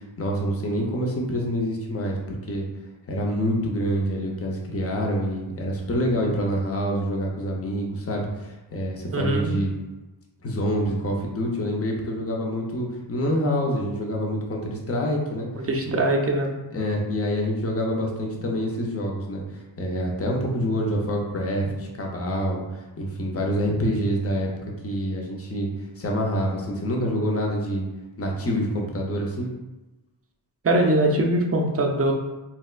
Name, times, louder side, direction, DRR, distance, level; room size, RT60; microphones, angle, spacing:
voice 1, 0.0-2.7 3.1-9.7 10.4-15.5 15.9-16.0 16.7-24.5 24.8-27.9 28.2-29.5, equal, 30° left, -1 dB, 0.7 m, -26 dB
voice 2, 9.1-9.5 15.5-16.5 30.6-32.1, right 1 dB, 30° right, 2 dB, 0.5 m, -22 dB
4.1 x 2.2 x 2.4 m, 1.0 s
wide cardioid pair, 75°, 47 cm